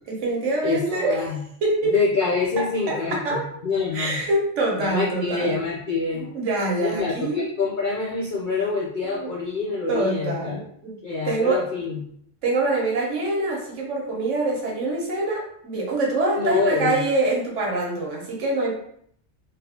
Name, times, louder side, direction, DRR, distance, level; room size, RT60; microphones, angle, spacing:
voice 1, 0.1-1.2 1.6-2.0 2.6-3.5 3.9-5.5 6.3-7.5 9.0-9.3 9.9-11.0 11.2-11.6 12.4-18.8, right 2 dB, 85° right, -1 dB, 1.2 m, -25 dB
voice 2, 0.6-1.4 1.9-4.2 4.8-6.3 6.8-10.6 11.0-12.0 16.3-17.0, left 4 dB, 55° left, -4 dB, 0.6 m, -26 dB
3.4 x 2.7 x 2.7 m, 0.67 s
omnidirectional pair, 1.2 m